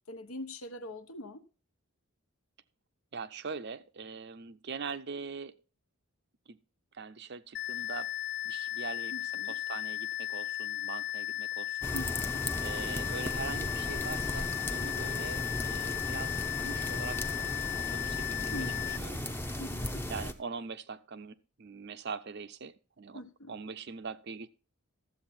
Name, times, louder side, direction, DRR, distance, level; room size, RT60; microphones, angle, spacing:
voice 1, 0.1-1.4 9.1-9.5 11.9-12.4 15.0-15.2 18.5-19.1 19.6-20.0 23.1-23.5, left 1 dB, 75° left, 1.2 m, -43 dB
voice 2, 3.1-5.5 6.5-6.6 6.9-8.1 8.4-11.9 12.6-19.2 20.1-23.2 23.5-24.5, right 5 dB, 50° right, 0.6 m, -42 dB
sound 1, 7.5-19.0, left 15 dB, 50° left, 0.4 m, -36 dB
sound 2, 11.8-20.3, left 1 dB, 10° left, 0.7 m, -36 dB
13.0 x 7.8 x 4.3 m
head